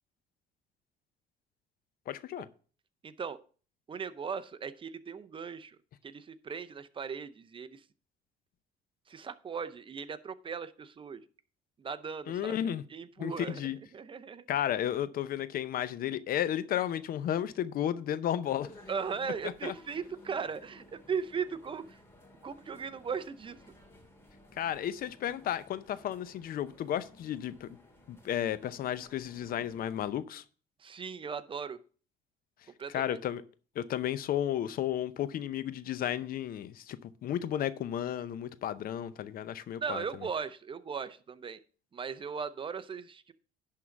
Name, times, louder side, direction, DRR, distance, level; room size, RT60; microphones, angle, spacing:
voice 1, 2.1-2.5 12.3-12.8 13.2-13.8 14.5-18.7 19.6-19.7 24.6-27.7 28.1-30.4 32.9-33.4 33.8-40.0, left 10 dB, 60° left, 0.7 m, -33 dB
voice 2, 3.0-3.4 3.9-5.8 6.0-7.8 9.1-11.2 11.8-12.6 12.9-14.4 18.9-22.0 22.4-23.6 30.8-31.8 32.8-33.2 39.8-41.6 41.9-43.3, right 6 dB, 30° right, 0.6 m, -38 dB
sound 1, 18.5-30.1, left 1 dB, 15° left, 2.2 m, -56 dB
11.0 x 3.8 x 7.0 m
cardioid pair, 110°, 17 cm